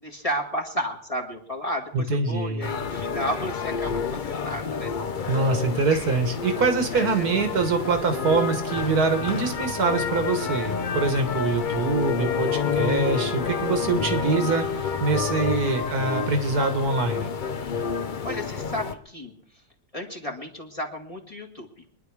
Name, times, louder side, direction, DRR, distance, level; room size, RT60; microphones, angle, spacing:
voice 1, 0.0-4.9 6.9-7.3 12.0-12.8 18.2-19.3 19.9-21.8, equal, 20° left, 0 dB, 1.9 m, -33 dB
voice 2, 1.9-2.7 5.3-17.3, right 4 dB, 65° right, 6 dB, 1.9 m, -24 dB
sound 1, 2.6-18.9, left 6 dB, 45° left, 0.7 m, -29 dB
23.5 x 10.5 x 4.8 m, 0.64 s
omnidirectional pair, 1.8 m